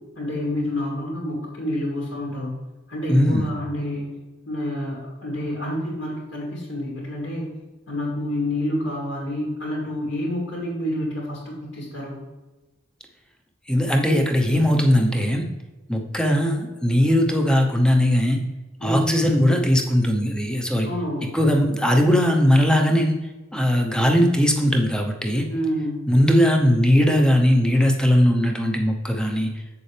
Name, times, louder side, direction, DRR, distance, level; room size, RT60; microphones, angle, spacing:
voice 1, 0.2-2.5 2.9-4.1 4.5-7.5 7.9-12.2 18.8-19.2 20.8-21.4 25.5-26.1, left 1 dB, 70° left, -5 dB, 2.8 m, -28 dB
voice 2, 3.1-3.5 13.7-15.4 15.9-18.4 18.8-20.9 21.3-23.1 23.5-25.5 26.1-29.5, equal, 5° left, 2 dB, 0.8 m, -19 dB
7.8 x 7.1 x 3.4 m, 1.1 s
head